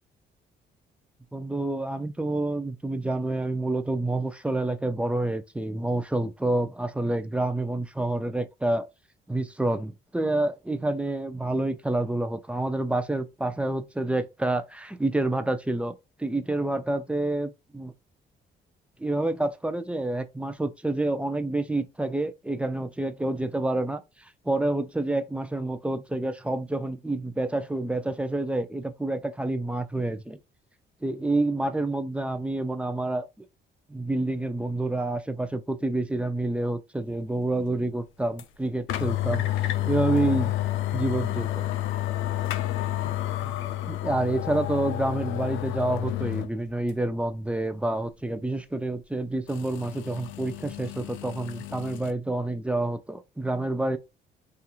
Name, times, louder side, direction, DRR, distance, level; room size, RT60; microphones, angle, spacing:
voice 1, 1.3-8.9 9.3-17.9 19.0-30.4 31.0-33.5 33.9-40.5 40.9-41.7 43.0-43.1 43.4-54.0, right 2 dB, 5° right, 0.4 m, -28 dB
sound 1, 38.4-38.5 38.9-46.5 46.9-47.0 49.5-52.1, left 14 dB, 80° left, 0.4 m, -30 dB
2.8 x 2.4 x 2.4 m
cardioid pair, 90°, 20 cm